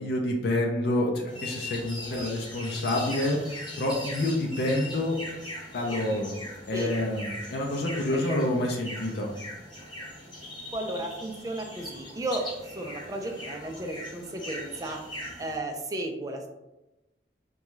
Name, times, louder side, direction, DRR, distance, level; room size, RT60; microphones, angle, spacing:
voice 1, 0.0-5.2 5.7-6.3 6.7-9.3, left 1 dB, 60° left, 0 dB, 0.5 m, -28 dB
sound 1, 1.3-15.5, left 1 dB, 25° left, 1.1 m, -40 dB
voice 2, 10.7-15.0 15.4-16.5, right 1 dB, 20° right, 2 dB, 0.4 m, -34 dB
3.6 x 2.3 x 3.0 m, 0.99 s
head